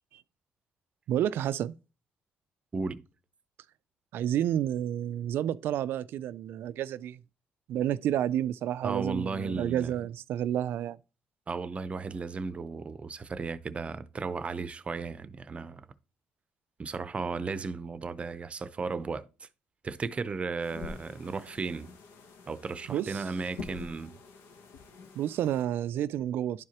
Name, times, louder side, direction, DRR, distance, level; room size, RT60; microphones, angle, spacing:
voice 1, 1.1-1.7 4.1-7.2 7.7-11.0 22.9-23.2 25.2-26.6, right 11 dB, 75° right, 0.3 m, -30 dB
voice 2, 2.7-3.1 8.8-10.0 11.5-15.9 16.8-19.5 19.8-21.9 22.5-24.2, right 4 dB, 30° right, 0.6 m, -35 dB
sound 1, 20.6-25.6, left 4 dB, 85° left, 0.9 m, -46 dB
11.0 x 4.7 x 2.9 m
cardioid pair, 95°, 4 cm